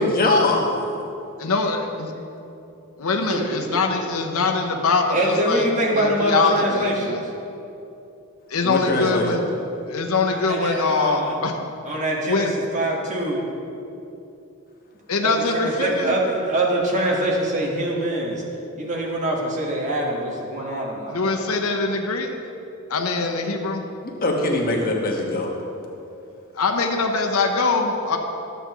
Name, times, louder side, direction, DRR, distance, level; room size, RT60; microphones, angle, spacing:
voice 1, 0.0-0.9 8.6-9.3 24.0-25.5, left 2 dB, 45° left, 0 dB, 1.2 m, -22 dB
voice 2, 1.4-2.1 3.0-5.7 5.9-7.2 8.5-9.5 9.9-11.5 12.2-12.5 15.1-16.1 21.1-22.3 22.9-23.9 26.5-28.2, left 3 dB, 75° left, 3 dB, 0.8 m, -23 dB
voice 3, 3.3-3.8 5.1-7.2 10.3-11.3 11.8-13.4 15.2-18.4 18.8-21.4, right 1 dB, 35° right, -2 dB, 1.4 m, -24 dB
12.5 x 7.9 x 3.0 m, 2.8 s
head